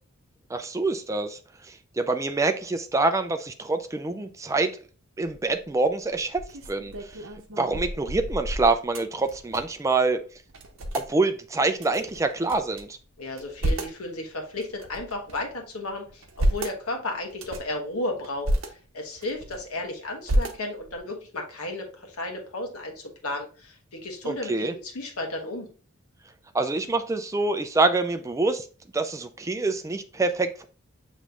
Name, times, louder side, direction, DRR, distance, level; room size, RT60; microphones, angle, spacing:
voice 1, 0.5-4.7 5.2-6.4 6.7-7.2 7.6-10.2 10.9-13.0 24.2-24.7 26.5-28.7 28.9-30.6, right 3 dB, 15° right, 8 dB, 0.3 m, -26 dB
sound 1, 5.3-5.6 6.1-9.9 10.1-10.2 10.5-11.1 11.8-12.8 13.3-14.0 14.6-15.5 16.1-16.8 17.3-17.8 18.2-18.7 19.2-19.8 20.2-21.0, right 1 dB, 60° right, 0.8 m, -30 dB
voice 2, 13.2-25.7, left 2 dB, 85° left, 2 dB, 1.2 m, -34 dB
6.8 x 3.1 x 2.4 m, 0.37 s
head